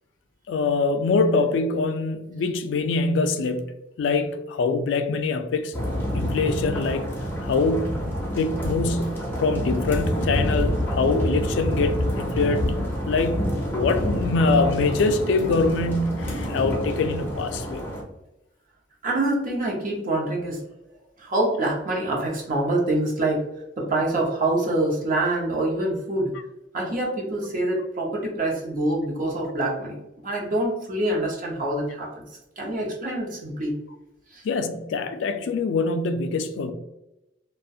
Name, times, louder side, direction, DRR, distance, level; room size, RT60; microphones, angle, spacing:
voice 1, 0.5-3.7 4.0-5.7 6.1-7.1 7.4-8.0 8.3-12.6 13.1-17.8 34.4-36.7, left 3 dB, 70° left, 0.3 m, -24 dB
sound 1, 5.7-18.0, equal, 10° left, 0.5 m, -27 dB
voice 2, 19.0-20.6 21.2-23.4 23.8-26.3 26.7-30.0 30.2-32.1 32.6-33.8 34.3-34.4, right 1 dB, 45° right, 0.7 m, -25 dB
2.4 x 2.1 x 2.6 m
head